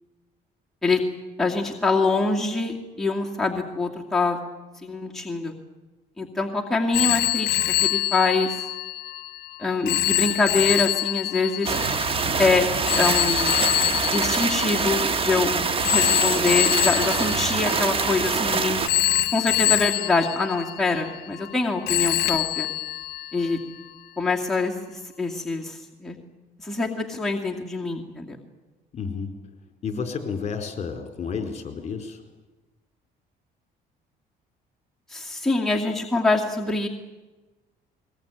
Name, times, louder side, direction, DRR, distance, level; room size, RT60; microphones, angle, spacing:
voice 1, 1.4-4.4 4.8-5.5 6.2-8.6 9.6-11.7 12.4-12.7 13.0-13.5 14.1-15.5 15.9-18.8 19.3-22.7 23.3-23.6 24.2-26.2 26.6-28.4 35.1-36.9, left 3 dB, ahead, -2 dB, 2.4 m, -24 dB
Telephone, 6.9-15.3 15.8-18.4 18.9-21.6 21.9-23.6, left 14 dB, 65° left, 1.0 m, -25 dB
sound 1, 11.6-18.9, right 4 dB, 35° right, 1.5 m, -25 dB
voice 2, 28.9-29.3 29.8-32.2, left 5 dB, 40° left, 5 dB, 4.1 m, -31 dB
21.0 x 21.0 x 9.1 m, 1.2 s
cardioid pair, 110°, 17 cm